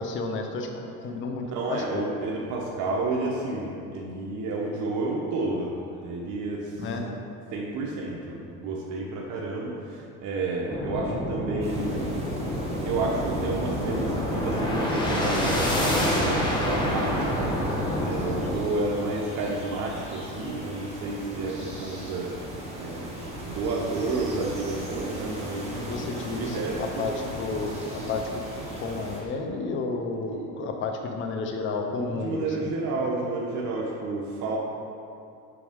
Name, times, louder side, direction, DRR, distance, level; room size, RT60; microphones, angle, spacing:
voice 1, 0.0-2.1 6.8-7.0 25.7-28.4 28.7-32.7, left 3 dB, 35° left, 2 dB, 0.6 m, -32 dB
voice 2, 1.5-7.1 7.5-12.2 12.8-17.5 18.0-22.3 22.8-23.2 23.4-25.8 26.4-27.2 30.3-30.5 31.9-34.6, right 3 dB, 55° right, -3 dB, 0.8 m, -31 dB
sound 1, 10.7-18.6, left 1 dB, 10° left, 0.9 m, -27 dB
sound 2, 11.6-29.2, right 1 dB, 15° right, 1.4 m, -38 dB
6.1 x 4.7 x 3.6 m, 2.6 s
cardioid pair, 120°, 36 cm